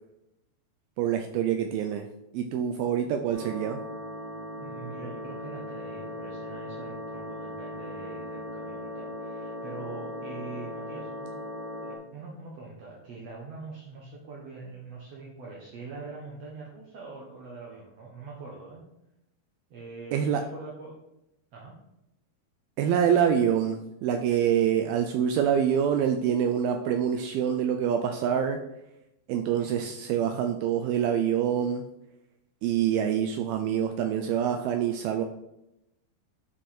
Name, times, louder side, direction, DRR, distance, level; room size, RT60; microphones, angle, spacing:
voice 1, 1.0-2.1 2.3-3.8 20.1-20.4 22.8-28.6 29.3-31.8 32.6-35.2, right 8 dB, 90° right, 5 dB, 2.1 m, -26 dB
sound 1, 3.3-11.9, left 1 dB, 40° right, 3.0 m, -38 dB
voice 2, 4.6-11.3 11.8-18.8 19.7-20.9 21.5-21.8 29.6-29.9, right 3 dB, 75° right, -3 dB, 1.5 m, -43 dB
11.5 x 4.9 x 4.3 m, 0.86 s
omnidirectional pair, 5.0 m